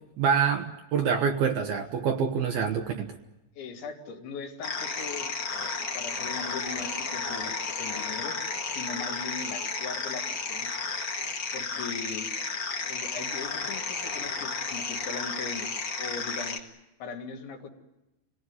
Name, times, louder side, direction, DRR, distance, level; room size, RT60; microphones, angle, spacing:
voice 1, 0.2-3.2, right 6 dB, 65° right, 3 dB, 2.6 m, -26 dB
voice 2, 3.6-5.3 5.6-8.3 8.7-10.7 11.5-12.3 12.9-16.7 17.0-17.7, left 5 dB, 75° left, 3 dB, 4.8 m, -40 dB
sound 1, 4.6-16.6, left 4 dB, 45° left, 1.4 m, -33 dB
28.5 x 18.5 x 9.7 m, 1.0 s
omnidirectional pair, 5.4 m